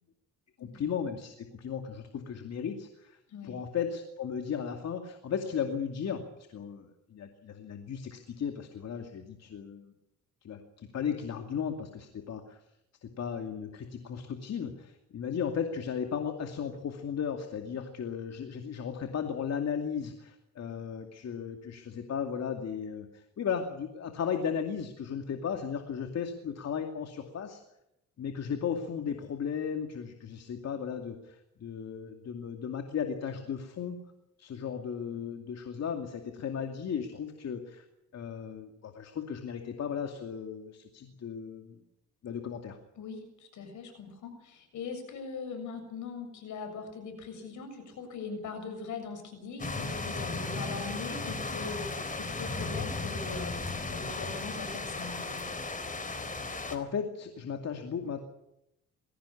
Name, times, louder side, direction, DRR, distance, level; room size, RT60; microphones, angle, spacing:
voice 1, 0.6-3.2 3.4-9.9 10.4-12.6 13.0-27.6 28.2-34.0 34.4-37.9 38.1-41.8 42.2-42.8 56.7-58.2, left 7 dB, 60° left, 5 dB, 2.5 m, -35 dB
voice 2, 43.0-55.4, left 4 dB, 75° left, 7 dB, 7.1 m, -41 dB
sound 1, 49.6-56.8, left 3 dB, 25° left, 3.8 m, -35 dB
21.5 x 17.0 x 8.5 m, 0.84 s
cardioid pair, 90°, 30 cm